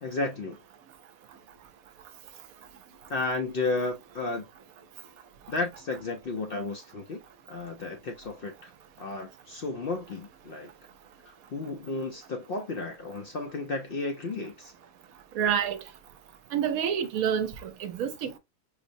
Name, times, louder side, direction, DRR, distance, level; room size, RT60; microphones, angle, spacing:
voice 1, 0.0-0.6 3.1-4.5 5.5-7.2 7.5-8.7 9.0-10.7 11.2-14.7, left 3 dB, 60° left, 0.6 m, -33 dB
voice 2, 15.3-15.8 16.5-18.4, right 8 dB, 80° right, 1.1 m, -28 dB
4.8 x 2.0 x 2.5 m
omnidirectional pair, 1.5 m